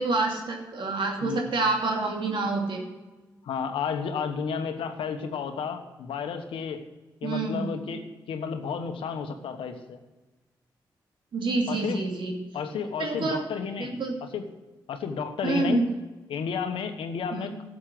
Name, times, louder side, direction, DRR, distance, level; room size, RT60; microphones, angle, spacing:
voice 1, 0.0-2.8 7.2-7.7 11.3-12.3 13.0-13.4 13.8-14.2 15.4-15.9 17.3-17.5, right 3 dB, 65° right, 0 dB, 2.8 m, -27 dB
voice 2, 3.4-6.8 7.2-10.0 11.7-12.0 12.5-14.0 14.3-14.5 14.9-15.8 16.3-17.6, left 6 dB, 80° left, 7 dB, 1.2 m, -32 dB
12.5 x 7.4 x 7.6 m, 1.2 s
supercardioid pair, 45°, 9 cm